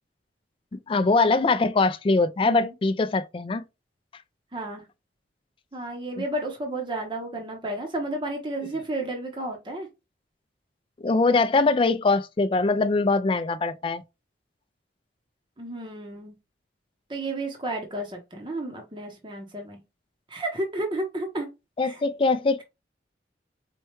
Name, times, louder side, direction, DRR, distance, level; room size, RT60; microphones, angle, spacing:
voice 1, 0.7-3.6 11.0-14.0 21.8-22.6, left 3 dB, 30° left, 0.3 m, -22 dB
voice 2, 2.4-2.7 4.5-4.9 5.7-9.9 15.6-16.3 17.1-19.8 20.3-21.5 21.8-22.0, right 1 dB, 25° right, 0.8 m, -32 dB
4.4 x 2.2 x 3.0 m
head